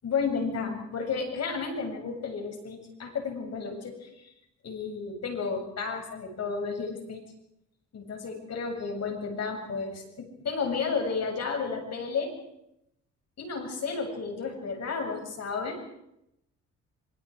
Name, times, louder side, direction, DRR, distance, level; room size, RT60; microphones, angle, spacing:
voice 1, 0.0-4.3 4.6-7.2 7.9-12.3 13.4-15.8, left 5 dB, 60° left, 4 dB, 7.4 m, -32 dB
27.5 x 24.5 x 5.0 m, 0.81 s
cardioid pair, 90°, 30 cm